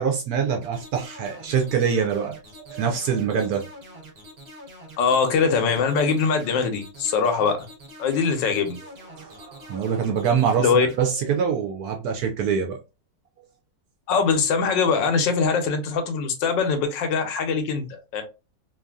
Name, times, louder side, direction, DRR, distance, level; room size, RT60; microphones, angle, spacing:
voice 1, 0.0-2.4 2.7-3.7 9.1-12.8, right 7 dB, 70° right, 0.9 m, -24 dB
sound 1, 0.6-11.0, equal, 45° right, 0.9 m, -44 dB
voice 2, 5.0-7.7 8.0-8.8 10.6-10.9 14.1-18.2, left 5 dB, 85° left, 1.4 m, -22 dB
3.1 x 2.5 x 2.3 m
omnidirectional pair, 1.9 m